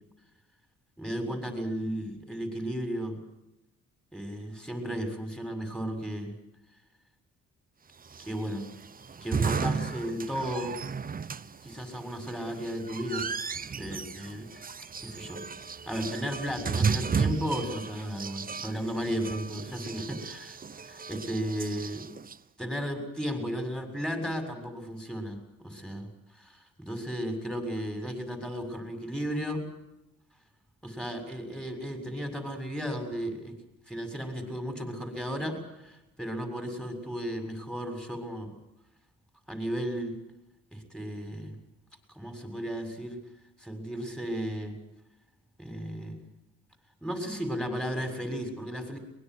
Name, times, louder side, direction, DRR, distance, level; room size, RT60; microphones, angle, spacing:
voice 1, 1.0-3.2 4.1-6.3 8.2-8.6 9.2-10.8 11.6-14.6 15.0-15.4 15.9-20.6 20.9-22.1 22.6-26.1 26.3-29.6 30.8-33.6 33.9-38.5 39.5-40.2 40.7-41.5 42.2-43.2 43.6-44.8 45.6-46.2 47.0-49.0, equal, ahead, 6 dB, 7.0 m, -34 dB
sound 1, 8.1-22.4, right 5 dB, 30° right, 1.0 m, -34 dB
23.5 x 21.5 x 8.1 m, 0.89 s
cardioid pair, 90°, 30 cm